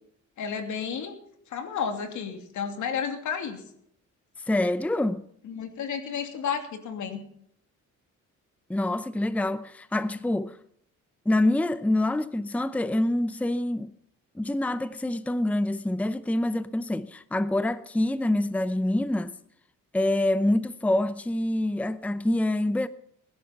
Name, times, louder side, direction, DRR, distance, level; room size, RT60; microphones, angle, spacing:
voice 1, 0.4-1.1 1.5-3.6 5.4-7.2, left 7 dB, 75° left, 2.8 m, -32 dB
voice 2, 4.5-5.2 8.7-10.6 11.3-13.9 14.4-19.3 19.9-22.9, left 1 dB, 5° left, 0.7 m, -26 dB
20.0 x 11.0 x 5.9 m
cardioid pair, 90°, 30 cm